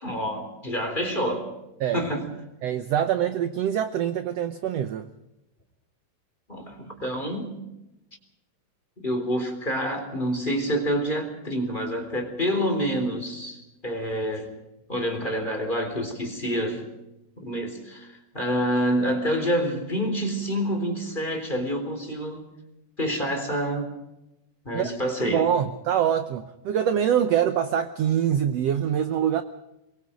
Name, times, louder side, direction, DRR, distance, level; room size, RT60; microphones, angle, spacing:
voice 1, 0.0-1.5 1.9-2.2 6.5-7.6 9.0-14.5 14.9-16.9 17.4-22.5 23.0-23.9 24.7-25.5, equal, 15° left, 4 dB, 3.7 m, -27 dB
voice 2, 2.6-5.1 24.7-29.4, right 9 dB, 75° right, 10 dB, 1.5 m, -24 dB
23.5 x 23.0 x 5.2 m, 0.93 s
omnidirectional pair, 4.0 m